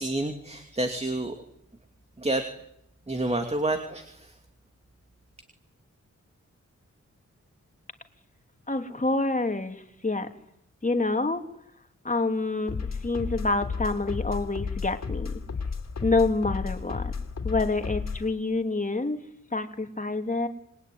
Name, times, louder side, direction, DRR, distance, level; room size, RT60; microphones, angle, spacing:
voice 1, 0.0-1.3 2.2-2.5 3.1-4.3, right 2 dB, 20° right, 5 dB, 2.8 m, -29 dB
voice 2, 8.7-10.3 10.8-11.4 12.0-12.7 13.0-15.4 16.0-17.1 17.4-19.2 19.5-20.5, left 3 dB, 25° left, 6 dB, 3.0 m, -27 dB
sound 1, 12.7-18.3, left 5 dB, 65° left, 3.3 m, -33 dB
28.0 x 22.0 x 9.5 m, 0.76 s
wide cardioid pair, 110°, 29 cm